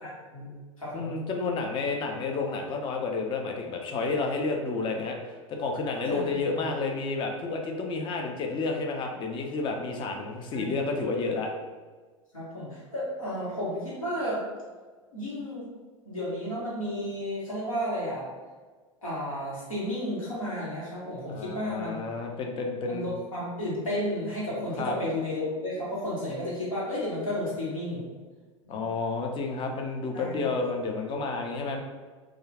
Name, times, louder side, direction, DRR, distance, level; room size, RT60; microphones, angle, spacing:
voice 1, 0.0-1.2 6.0-6.6 10.5-10.7 12.3-14.4 15.1-15.7 16.0-18.3 19.0-22.0 22.9-28.1 28.6-28.9 30.1-30.5, equal, 85° left, -8 dB, 1.2 m, -33 dB
voice 2, 0.9-5.2 5.5-11.5 21.3-23.1 24.8-25.0 28.7-31.8, left 3 dB, 30° left, 2 dB, 0.5 m, -30 dB
2.3 x 2.3 x 3.3 m, 1.4 s
hypercardioid pair, 90°, 17 cm